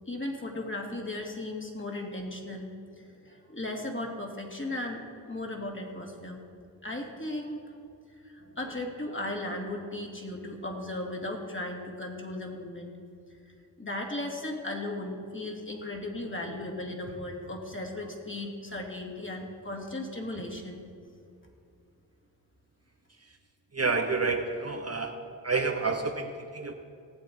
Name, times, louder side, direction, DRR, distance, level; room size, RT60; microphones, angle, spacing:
voice 1, 0.1-2.7 3.0-5.0 5.3-6.4 6.8-7.8 8.1-13.0 13.8-20.8, left 1 dB, 25° left, 1 dB, 2.7 m, -36 dB
voice 2, 23.7-25.1 25.4-26.7, right 4 dB, 30° right, 4 dB, 1.1 m, -29 dB
18.5 x 7.7 x 4.6 m, 2.4 s
supercardioid pair, 45°, 46 cm